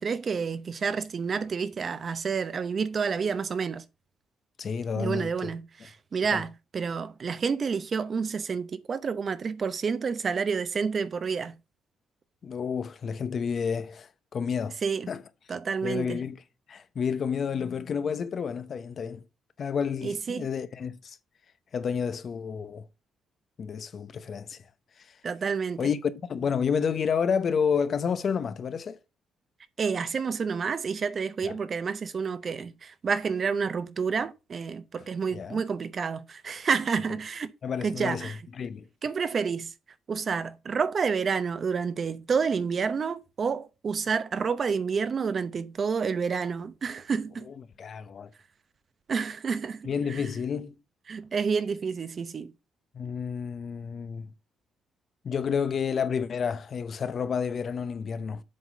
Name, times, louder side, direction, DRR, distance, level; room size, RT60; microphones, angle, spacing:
voice 1, 0.0-3.8 5.0-11.6 14.8-15.1 15.5-16.2 20.0-20.5 25.2-25.9 29.8-37.5 37.8-38.4 39.0-39.7 40.1-47.5 49.1-50.2 51.1-52.5, right 5 dB, 45° right, 0.8 m, -29 dB
voice 2, 4.6-5.5 12.4-14.8 15.1-15.2 15.8-16.4 16.7-19.2 19.6-21.2 21.7-22.9 23.6-24.6 25.8-29.0 31.4-31.6 35.3-35.6 37.6-38.9 47.5-48.3 49.8-50.7 52.9-54.3 55.2-58.4, left 6 dB, 50° left, 0.8 m, -30 dB
7.6 x 4.1 x 4.7 m
cardioid pair, 90°, 0 cm